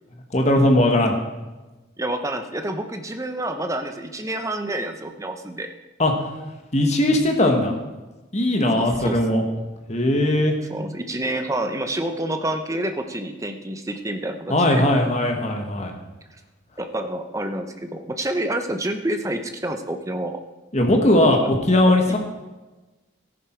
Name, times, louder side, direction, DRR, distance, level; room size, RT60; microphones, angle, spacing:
voice 1, 0.3-1.2 6.0-6.1 6.7-7.8 8.3-9.4 9.9-10.5 14.5-15.9 20.7-22.2, left 1 dB, 35° left, 3 dB, 1.6 m, -19 dB
voice 2, 2.0-5.7 8.7-9.2 10.7-14.8 16.8-20.4 21.2-21.4, right 1 dB, 15° right, 6 dB, 0.8 m, -28 dB
14.0 x 10.5 x 4.6 m, 1.1 s
head